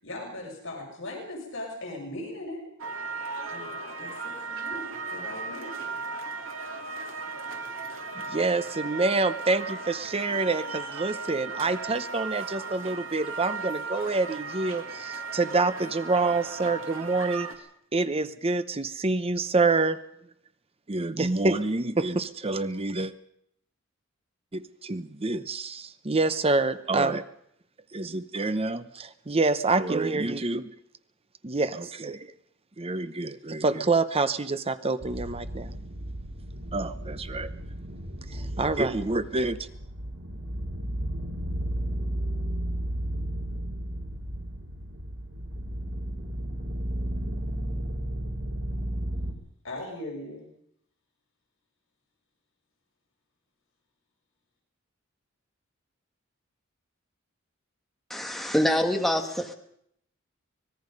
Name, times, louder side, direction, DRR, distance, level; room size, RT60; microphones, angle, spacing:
voice 1, 0.0-2.6 3.5-5.8 49.6-50.5, left 1 dB, 65° left, -1 dB, 6.5 m, -39 dB
sound 1, 2.8-17.5, right 4 dB, 70° right, 2.9 m, -36 dB
voice 2, 8.3-17.5 17.9-20.0 20.9-23.1 24.5-27.2 27.9-30.7 31.4-32.3 32.8-35.7 36.7-37.5 38.3-39.6, right 3 dB, 30° right, 12 dB, 0.8 m, -27 dB
sound 2, 35.0-49.3, right 1 dB, 90° right, 4.0 m, -34 dB
voice 3, 58.1-59.5, left 1 dB, ahead, 3 dB, 1.7 m, -25 dB
25.0 x 20.0 x 5.3 m, 0.70 s
head